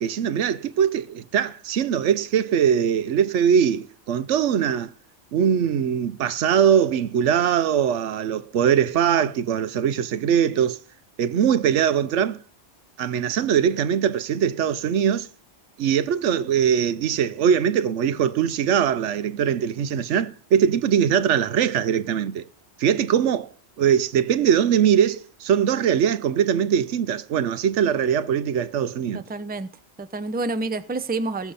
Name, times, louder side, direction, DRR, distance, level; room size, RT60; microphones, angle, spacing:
voice 1, 0.0-4.9 5.3-10.8 11.2-12.4 13.0-15.3 15.8-22.5 22.8-29.2, right 8 dB, 90° right, 1.1 m, -21 dB
voice 2, 29.1-29.7 30.0-31.5, right 3 dB, 10° right, 0.5 m, -28 dB
20.0 x 7.1 x 4.1 m
omnidirectional pair, 1.2 m